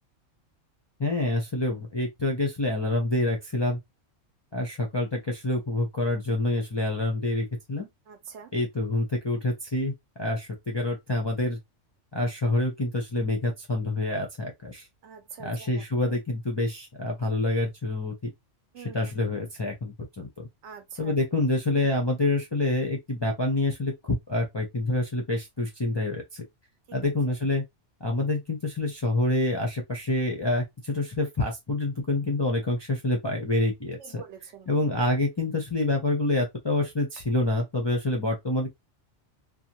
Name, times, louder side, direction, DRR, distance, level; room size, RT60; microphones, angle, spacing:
voice 1, 1.0-3.8 4.5-7.9 8.5-9.9 10.2-11.6 12.1-14.8 15.4-18.1 18.9-20.5 21.0-26.4 26.9-27.6 28.0-34.2 34.7-38.7, left 2 dB, 30° left, 0.5 m, -27 dB
voice 2, 8.1-8.5 15.0-16.1 18.7-19.0 20.6-21.1 26.9-27.0 34.0-34.8, right 7 dB, 75° right, 1.0 m, -45 dB
2.5 x 2.2 x 2.8 m
omnidirectional pair, 1.2 m